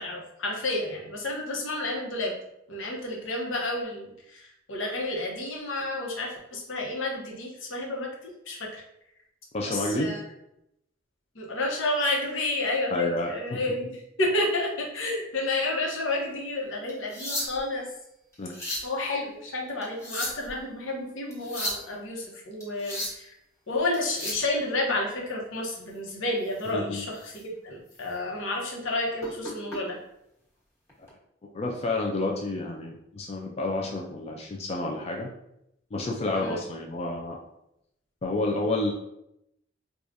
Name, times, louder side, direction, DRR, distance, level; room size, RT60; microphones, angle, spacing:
voice 1, 0.0-2.3 2.7-8.8 9.6-10.2 11.3-17.9 18.8-23.3 23.7-30.0 36.3-36.6, left 2 dB, 80° left, -1 dB, 0.9 m, -30 dB
voice 2, 9.5-10.1 12.9-13.6 18.4-18.5 26.7-27.1 31.5-35.3 35.9-37.4 38.2-38.9, left 2 dB, 35° left, 0 dB, 0.4 m, -30 dB
sound 1, 16.9-17.8 18.3-18.9 19.8-20.5 21.3-21.8 22.6-23.2 23.9-24.5 26.5-26.7 27.2-27.4 27.9-28.0 29.2-29.8 30.9-31.1, left 1 dB, 15° left, 1.1 m, -34 dB
4.6 x 2.3 x 2.6 m, 0.81 s
head